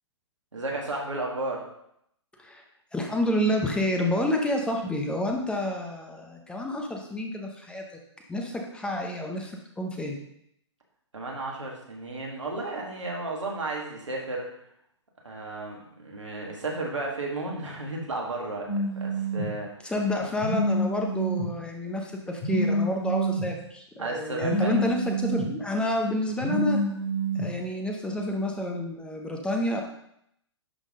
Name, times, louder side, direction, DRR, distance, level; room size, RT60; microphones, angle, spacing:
voice 1, 0.5-1.7 11.1-14.5 15.2-19.9 24.0-24.8, right 2 dB, 85° right, -1 dB, 2.0 m, -33 dB
voice 2, 2.9-7.8 8.3-10.2 19.8-26.8 27.3-29.8, left 1 dB, 5° left, 2 dB, 0.8 m, -29 dB
Telephone, 18.7-19.5 20.4-21.5 22.4-23.5 24.4-25.5 26.4-27.5, right 1 dB, 65° left, 2.1 m, -27 dB
11.0 x 3.7 x 3.7 m, 0.74 s
figure-of-eight pair, 120°, 15 cm